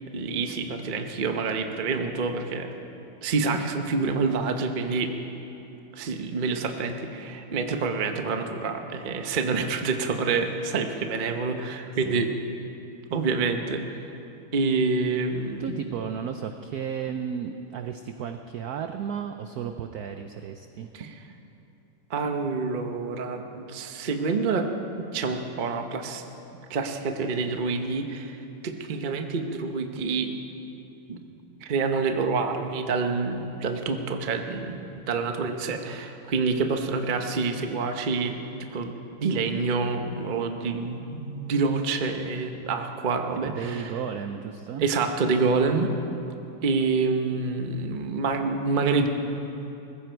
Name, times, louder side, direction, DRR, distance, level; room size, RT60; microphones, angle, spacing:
voice 1, 0.1-2.7 3.2-5.1 5.9-12.3 13.1-14.0 14.5-15.7 20.9-21.1 22.1-24.7 25.1-26.2 26.7-28.4 28.6-30.3 31.1-31.2 31.6-38.4 38.7-38.9 39.2-43.9 44.8-45.9 46.6-49.1, right 4 dB, 45° right, 5 dB, 0.6 m, -27 dB
voice 2, 15.6-20.9 43.5-44.9, right 8 dB, 85° right, 7 dB, 0.8 m, -34 dB
20.5 x 15.5 x 4.5 m, 2.9 s
omnidirectional pair, 2.3 m